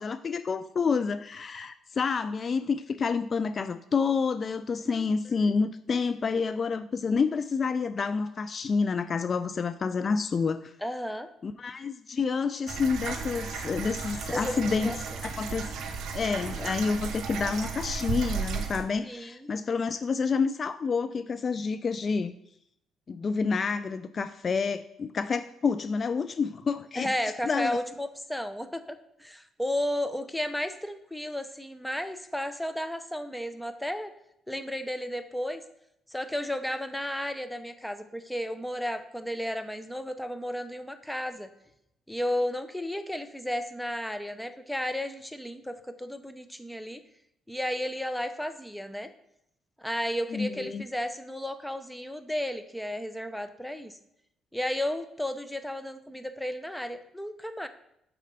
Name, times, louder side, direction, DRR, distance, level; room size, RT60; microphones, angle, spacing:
voice 1, 0.0-10.7 11.4-14.9 15.2-15.7 16.1-22.3 23.1-27.1 27.4-27.8 50.3-50.8, left 5 dB, 45° left, 12 dB, 0.3 m, -28 dB
voice 2, 10.8-11.3 14.3-15.0 19.0-19.5 26.9-34.1 34.5-35.6 36.1-41.5 42.1-47.0 47.5-49.1 49.8-54.0 54.5-57.7, left 1 dB, 5° left, 10 dB, 0.7 m, -33 dB
sound 1, 12.7-18.8, right 5 dB, 65° right, 0.8 m, -34 dB
5.1 x 4.2 x 5.4 m, 0.78 s
hypercardioid pair, 55°, 0 cm